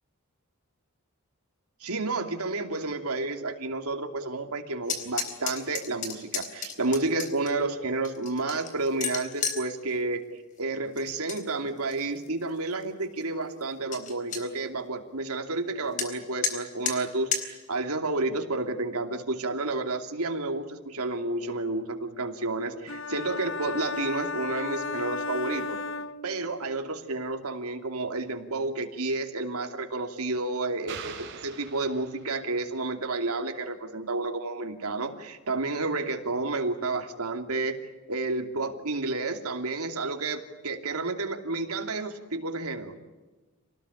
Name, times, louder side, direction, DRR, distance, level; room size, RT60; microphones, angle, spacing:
voice 1, 1.8-10.2 10.6-25.8 26.2-37.8 38.1-42.9, right 2 dB, 90° right, 5 dB, 2.8 m, -31 dB
sound 1, 4.8-7.5 8.0-9.6 11.0-11.4 11.8-12.3 12.8-12.9 13.2-13.3 13.6-13.7 13.9-14.4 16.0-16.1 16.4-16.5 16.9-17.0 17.3-17.4, left 6 dB, 35° left, 3.9 m, -32 dB
sound 2, 22.9-26.8, left 3 dB, 60° left, 0.8 m, -34 dB
sound 3, 30.9-32.6, right 6 dB, 50° right, 4.2 m, -43 dB
27.5 x 19.0 x 9.9 m, 1.2 s
head